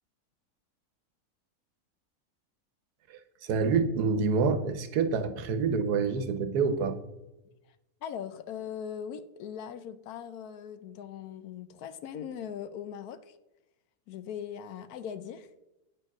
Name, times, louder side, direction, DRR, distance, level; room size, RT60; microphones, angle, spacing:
voice 1, 3.1-7.0, right 5 dB, 85° right, 9 dB, 1.3 m, -27 dB
voice 2, 8.0-13.4 14.1-15.5, left 8 dB, 75° left, 13 dB, 1.1 m, -40 dB
8.8 x 4.6 x 6.0 m, 0.98 s
omnidirectional pair, 1.6 m